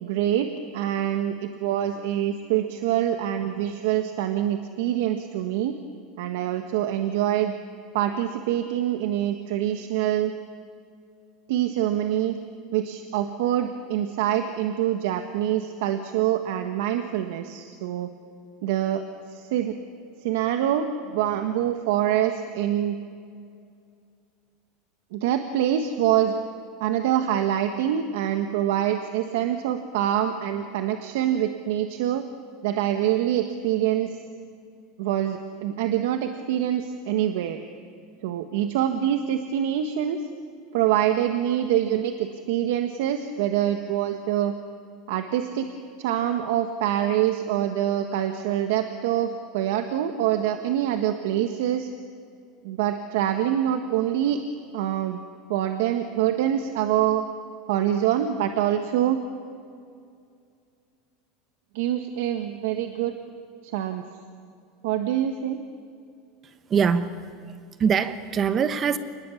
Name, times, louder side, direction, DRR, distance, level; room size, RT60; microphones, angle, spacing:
voice 1, 0.0-5.7 6.2-7.5 7.9-10.3 11.5-12.4 12.7-18.1 18.6-19.8 20.2-23.0 25.1-26.3 26.8-32.2 32.6-34.2 35.0-37.6 38.2-40.3 40.7-44.5 45.1-45.7 46.0-51.9 52.6-54.4 54.7-55.2 55.5-57.3 57.7-59.2 61.7-63.2 63.6-64.0 64.8-65.6, right 11 dB, 75° right, 7 dB, 1.5 m, -25 dB
voice 2, 66.4-67.1 67.8-69.0, right 7 dB, 25° right, 11 dB, 1.2 m, -23 dB
27.5 x 20.5 x 8.5 m, 2.3 s
supercardioid pair, 160°, 0 cm